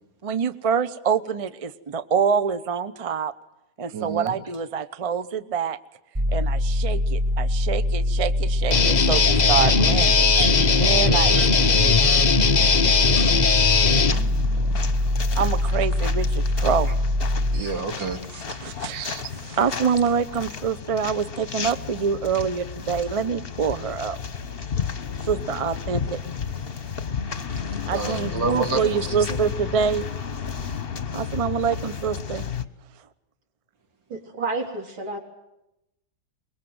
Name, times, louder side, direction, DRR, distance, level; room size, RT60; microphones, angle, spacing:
voice 1, 0.2-3.3 3.8-5.8 6.3-9.2 9.5-10.3 10.8-11.3 11.8-12.3 15.4-16.9 18.5-24.2 25.2-26.2 27.9-30.1 31.1-32.5, right 6 dB, 45° right, 13 dB, 0.4 m, -26 dB
voice 2, 3.9-4.4 10.3-10.7 11.0-11.5 13.0-13.3 14.0-14.8 17.5-18.8 27.9-29.4, right 3 dB, 65° right, 4 dB, 3.4 m, -30 dB
sound 1, 6.1-17.6, left 1 dB, 15° right, 1.6 m, -23 dB
Guitar, 8.7-14.1, left 5 dB, 55° left, 0.4 m, -19 dB
sound 2, 13.7-32.6, left 6 dB, 35° left, 1.1 m, -33 dB
voice 3, 34.1-35.2, right 3 dB, 80° right, 2 dB, 4.6 m, -30 dB
24.0 x 22.0 x 8.0 m, 0.89 s
omnidirectional pair, 2.2 m